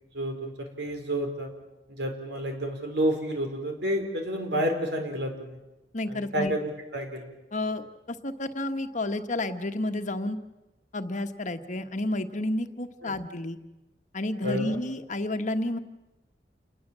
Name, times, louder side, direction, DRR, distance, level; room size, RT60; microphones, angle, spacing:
voice 1, 0.1-1.5 1.9-5.6 6.1-7.3 13.0-13.1 14.4-14.8, equal, 70° right, 5 dB, 4.6 m, -30 dB
voice 2, 5.9-6.5 7.5-10.4 10.9-13.6 14.1-15.8, left 1 dB, 45° left, 7 dB, 1.4 m, -31 dB
28.5 x 20.0 x 7.5 m, 1.0 s
head